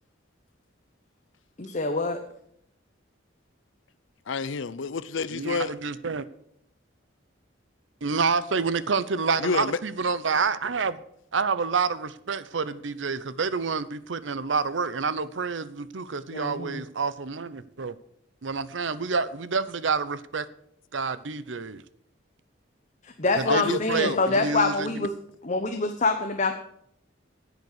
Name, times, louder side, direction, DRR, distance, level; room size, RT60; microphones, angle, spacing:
voice 1, 1.6-2.2 16.3-16.8 23.0-25.1 25.4-26.5, left 3 dB, 40° left, 0.9 m, -26 dB
voice 2, 4.3-5.7 9.4-9.8 23.5-24.2, left 5 dB, 85° left, 0.6 m, -29 dB
voice 3, 5.3-6.3 8.0-11.0 11.3-17.9 18.4-20.5 20.9-21.8 23.4-25.1, right 5 dB, 75° right, 0.7 m, -28 dB
10.5 x 8.2 x 6.7 m
head